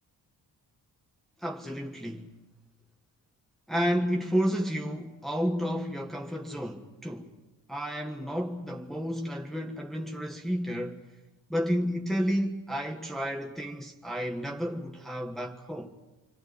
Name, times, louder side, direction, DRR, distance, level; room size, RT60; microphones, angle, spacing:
voice 1, 1.4-2.3 3.7-7.3 7.7-11.1 11.5-15.9, equal, ahead, 1.5 m, -31 dB
30.0 x 26.0 x 5.2 m
wide cardioid pair, 160°, 38 cm